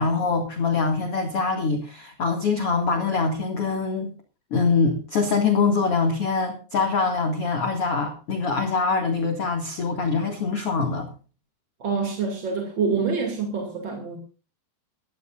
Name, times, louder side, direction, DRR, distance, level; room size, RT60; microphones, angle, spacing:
voice 1, 0.0-4.1 4.5-11.1, left 4 dB, 45° left, 4 dB, 2.3 m, -24 dB
voice 2, 11.8-14.2, right 5 dB, 35° right, 3 dB, 2.4 m, -26 dB
21.0 x 14.5 x 2.5 m, 0.35 s
omnidirectional pair, 5.0 m